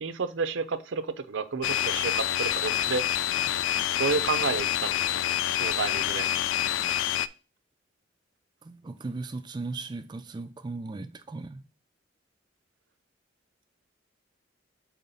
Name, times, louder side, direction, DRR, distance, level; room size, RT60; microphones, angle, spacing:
voice 1, 0.0-3.1 4.0-5.0 5.6-6.3, right 5 dB, 80° right, 0.5 m, -30 dB
sound 1, 1.6-7.3, left 11 dB, 80° left, 0.3 m, -27 dB
voice 2, 8.6-11.7, right 3 dB, 25° right, 0.3 m, -37 dB
5.6 x 4.1 x 4.0 m
head